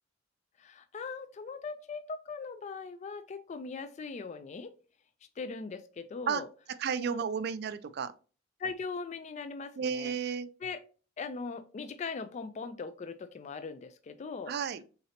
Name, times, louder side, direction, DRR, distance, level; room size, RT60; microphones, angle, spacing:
voice 1, 0.6-4.7 5.4-6.5 7.1-7.2 8.6-10.2 10.6-10.8 11.2-14.5, left 4 dB, 40° left, 0.3 m, -40 dB
voice 2, 6.8-8.1 9.8-10.5 14.5-14.8, right 6 dB, 55° right, 0.4 m, -32 dB
4.3 x 3.9 x 2.8 m
head